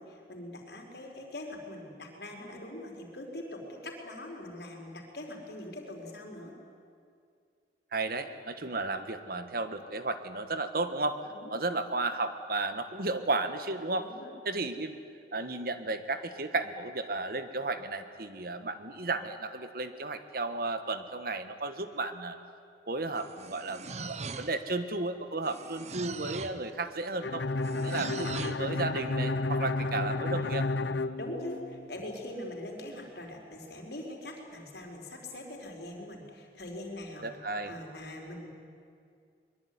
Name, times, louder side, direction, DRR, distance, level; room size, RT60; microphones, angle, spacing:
voice 1, 0.0-6.5 11.3-11.5 14.0-14.3 31.2-37.3 37.6-38.5, left 1 dB, 65° left, 1 dB, 4.8 m, -42 dB
voice 2, 7.9-14.1 14.4-15.0 15.3-22.4 22.9-27.4 27.8-30.7 37.2-37.7, right 3 dB, 55° right, 10 dB, 1.5 m, -33 dB
sound 1, 23.1-24.7 25.4-26.7 27.6-28.7, right 4 dB, 40° right, 0.9 m, -41 dB
Bowed string instrument, 27.2-32.0, left 2 dB, 85° left, 0.8 m, -32 dB
23.0 x 22.0 x 9.7 m, 2.3 s
head